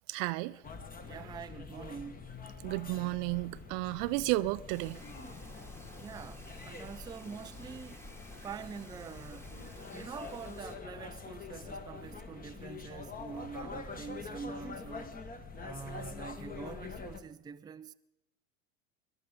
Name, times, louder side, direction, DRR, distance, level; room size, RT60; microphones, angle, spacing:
voice 1, 0.1-0.6 2.6-5.0, right 20 dB, 55° right, 0.6 m, -32 dB
sound 1, 0.6-17.2, left 4 dB, 20° left, 1.4 m, -45 dB
voice 2, 1.0-2.3 6.0-8.1 8.4-9.6 9.9-15.2 15.6-17.9, right 6 dB, 10° right, 0.4 m, -45 dB
Bird vocalization bird call bird song, 4.7-10.8, equal, 5° left, 1.7 m, -54 dB
22.5 x 11.0 x 5.2 m
hypercardioid pair, 90°, 39 cm